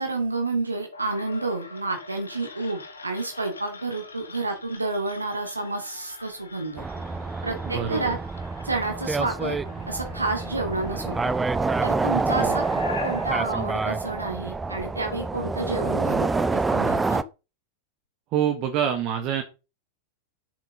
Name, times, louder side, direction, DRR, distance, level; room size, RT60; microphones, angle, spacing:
voice 1, 0.0-6.9 7.4-8.2 8.6-9.6 9.9-11.4 11.8-17.2, right 3 dB, 80° right, 3 dB, 2.5 m, -30 dB
sound 1, 0.9-14.8, left 4 dB, 75° left, 1.8 m, -43 dB
sound 2, 6.8-17.2, right 3 dB, 10° right, 0.6 m, -27 dB
voice 2, 7.6-8.1 12.4-12.6 18.3-19.4, right 9 dB, 40° right, 5 dB, 1.5 m, -26 dB
8.6 x 7.4 x 3.9 m, 0.29 s
figure-of-eight pair, 90°, 0 cm